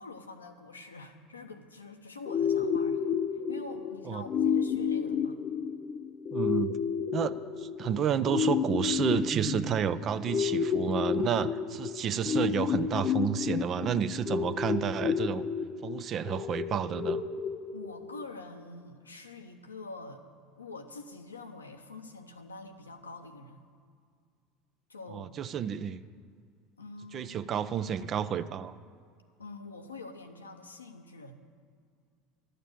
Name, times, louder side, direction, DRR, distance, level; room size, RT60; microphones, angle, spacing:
voice 1, 0.0-5.4 17.7-20.2 20.6-23.6 24.9-25.3 26.8-27.3 29.4-31.4, left 3 dB, 90° left, 5 dB, 0.9 m, -45 dB
sound 1, 2.3-18.2, left 7 dB, 40° left, 0.8 m, -31 dB
voice 2, 6.3-6.7 7.1-15.5 15.8-17.2 25.1-26.0 27.1-28.8, right 8 dB, 40° right, 13 dB, 0.5 m, -31 dB
12.0 x 6.6 x 8.9 m, 2.1 s
figure-of-eight pair, 75°, 0 cm